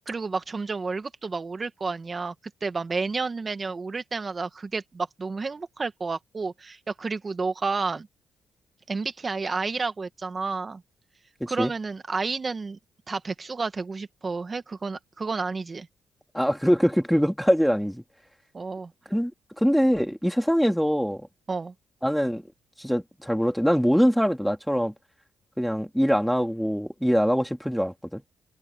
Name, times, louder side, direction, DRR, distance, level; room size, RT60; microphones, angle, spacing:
voice 1, 0.1-2.3 2.6-8.1 8.9-10.8 11.5-12.8 13.1-15.9 18.5-18.9 21.5-21.7, right 4 dB, 30° right, 2.0 m, -30 dB
voice 2, 11.4-11.7 16.3-18.0 19.1-19.3 19.6-21.3 22.0-22.4 22.8-24.9 25.6-28.2, equal, ahead, 2.8 m, -23 dB
cardioid pair, 90°, 0 cm